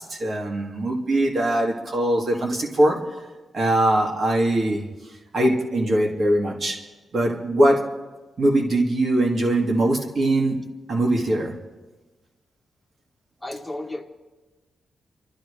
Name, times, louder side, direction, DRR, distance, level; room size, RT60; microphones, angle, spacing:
voice 1, 0.0-3.0 3.5-4.8 5.3-6.8 7.1-7.9 8.4-11.5, right 1 dB, 50° right, 0 dB, 2.5 m, -21 dB
voice 2, 13.4-14.0, left 1 dB, 5° left, 3 dB, 1.2 m, -32 dB
29.5 x 13.0 x 3.4 m, 1.2 s
wide cardioid pair, 140°, 0 cm